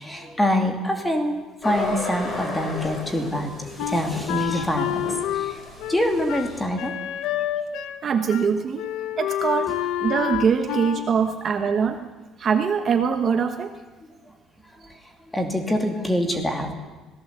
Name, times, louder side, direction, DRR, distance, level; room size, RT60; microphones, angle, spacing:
voice 1, 0.0-1.4 1.6-5.1 5.3-5.6 5.9-6.9 14.8-14.9 15.3-16.7, left 1 dB, 5° left, 4 dB, 2.6 m, -25 dB
sound 1, 1.6-6.7, left 2 dB, 25° left, 5.1 m, -34 dB
Wind instrument woodwind instrument, 3.8-8.0 8.3-8.5 8.8-11.1, left 11 dB, 70° left, 1.4 m, -28 dB
voice 2, 8.0-8.8 9.2-9.7 10.0-12.1 12.4-13.7, right 6 dB, 30° right, 7 dB, 1.2 m, -22 dB
26.0 x 18.0 x 8.2 m, 1.2 s
cardioid pair, 170°, 0 cm